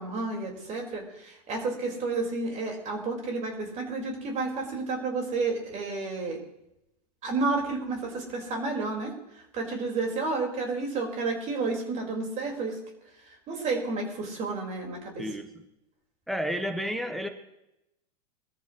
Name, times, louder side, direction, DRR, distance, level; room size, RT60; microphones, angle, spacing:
voice 1, 0.0-6.4 7.2-12.8 13.2-15.3, right 3 dB, 35° right, 1 dB, 4.8 m, -31 dB
voice 2, 15.2-15.5 16.3-17.3, equal, ahead, 6 dB, 1.5 m, -31 dB
22.5 x 13.5 x 3.2 m, 0.86 s
hypercardioid pair, 95°, 20 cm